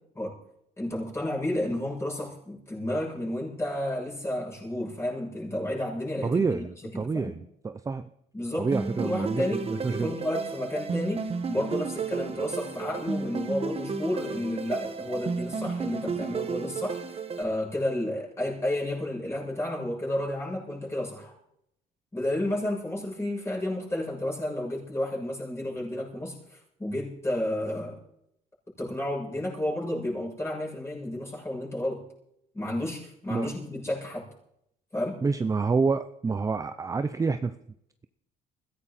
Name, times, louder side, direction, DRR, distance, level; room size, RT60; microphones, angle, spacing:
voice 1, 0.8-6.7 6.9-7.4 8.3-8.7 9.0-17.0 17.4-21.3 22.1-28.0 28.8-32.0 32.5-34.3 34.9-35.2, left 1 dB, 15° left, -3 dB, 7.5 m, -31 dB
voice 2, 6.2-8.1 8.6-10.1 33.3-33.5 35.2-37.6, right 4 dB, 20° right, 10 dB, 0.6 m, -28 dB
sound 1, 8.7-17.4, right 4 dB, 35° right, 1.6 m, -32 dB
21.0 x 16.0 x 4.3 m, 0.76 s
cardioid pair, 110°, 17 cm